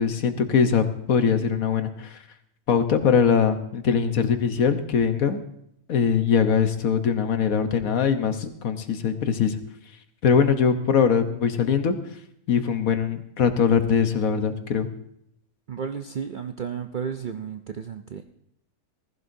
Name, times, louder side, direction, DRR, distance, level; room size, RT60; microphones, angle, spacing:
voice 1, 0.0-2.2 2.7-5.4 5.9-9.6 10.2-12.0 12.5-14.9, left 6 dB, 65° left, 8 dB, 1.4 m, -22 dB
voice 2, 15.7-18.3, right 7 dB, 70° right, 6 dB, 0.4 m, -33 dB
19.5 x 15.0 x 2.7 m, 0.73 s
omnidirectional pair, 1.7 m